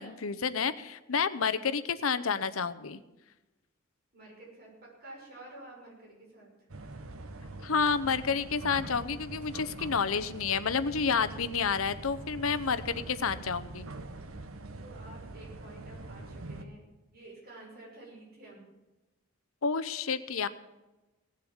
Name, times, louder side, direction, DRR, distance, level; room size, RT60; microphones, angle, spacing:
voice 1, 0.0-3.0 7.6-13.9 19.6-20.5, left 5 dB, 80° left, 13 dB, 0.8 m, -30 dB
voice 2, 4.1-6.5 14.8-16.8 17.1-18.7, right 2 dB, 50° right, -3 dB, 6.0 m, -50 dB
sound 1, 6.7-16.6, right 2 dB, 85° right, 1.1 m, -44 dB
18.0 x 7.5 x 7.2 m, 1.1 s
head